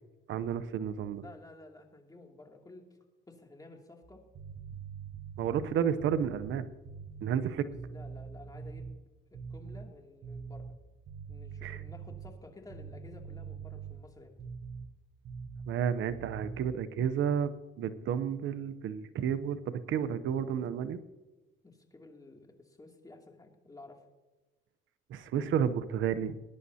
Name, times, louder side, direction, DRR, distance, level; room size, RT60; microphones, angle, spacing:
voice 1, 0.3-1.2 5.4-6.7 7.2-7.6 11.6-11.8 15.7-17.5 17.8-21.0 25.1-26.4, right 8 dB, 80° right, 12 dB, 0.7 m, -31 dB
voice 2, 1.2-2.9 3.3-4.2 7.4-7.5 7.9-8.9 9.3-10.7 11.3-14.4 21.6-24.1, left 2 dB, 20° left, 2 dB, 2.6 m, -52 dB
sound 1, 4.0-9.0 9.3-9.9 10.2-14.9 15.2-15.8 16.1-16.8, right 6 dB, 55° right, 1.2 m, -44 dB
20.5 x 10.5 x 2.8 m, 1.1 s
cardioid pair, 90°, 20 cm